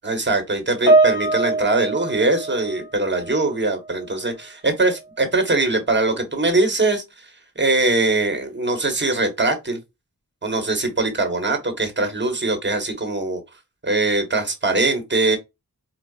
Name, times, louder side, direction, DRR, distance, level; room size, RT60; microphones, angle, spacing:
voice 1, 0.0-7.0 7.6-9.8 10.4-13.4 13.8-15.4, right 2 dB, 30° right, 1.1 m, -21 dB
Piano, 0.9-3.5 3.8-4.1 4.9-5.0, right 2 dB, 70° left, 1.8 m, -21 dB
4.7 x 2.3 x 2.3 m
wide cardioid pair, 75°, 36 cm